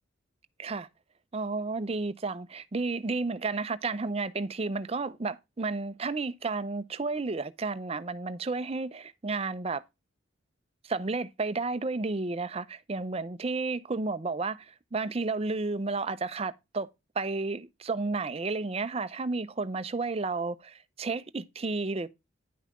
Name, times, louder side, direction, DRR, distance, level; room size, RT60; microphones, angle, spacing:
voice 1, 1.3-9.8 10.9-16.9 17.2-22.1, right 3 dB, 30° right, 0.5 m, -32 dB
10.5 x 5.5 x 3.6 m
head